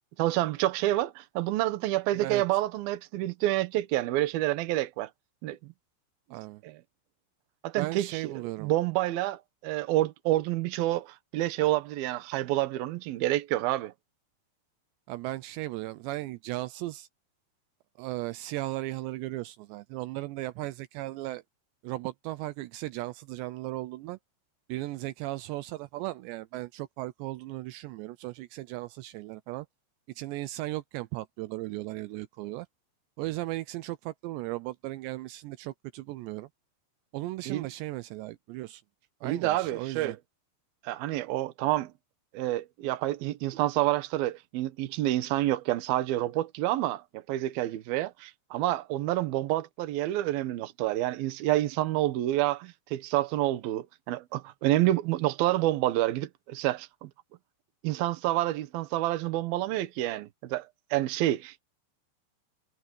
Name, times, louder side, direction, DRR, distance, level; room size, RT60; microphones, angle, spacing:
voice 1, 0.2-5.1 5.4-5.7 6.6-6.8 7.6-13.9 37.5-37.7 39.2-40.2 40.8-41.9 42.3-57.1 57.8-60.7 60.9-61.6, right 15 dB, 70° right, 2.3 m, -28 dB
voice 2, 6.3-6.6 7.8-8.7 15.1-17.1 18.0-21.4 21.8-24.2 24.7-29.7 30.2-32.7 33.2-36.5 37.1-38.8 39.2-40.2, right 18 dB, 90° right, 2.5 m, -36 dB
omnidirectional pair, 5.9 m